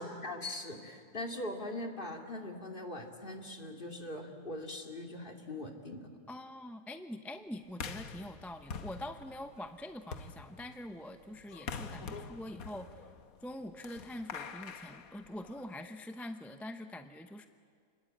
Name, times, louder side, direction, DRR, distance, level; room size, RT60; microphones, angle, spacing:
voice 1, 0.0-6.1, left 1 dB, 40° left, 2 dB, 2.6 m, -41 dB
voice 2, 6.3-13.0 13.4-17.5, left 1 dB, ahead, 7 dB, 0.6 m, -44 dB
sound 1, 7.7-15.8, left 5 dB, 85° left, 1.5 m, -46 dB
28.5 x 20.0 x 8.8 m, 2.2 s
omnidirectional pair, 1.5 m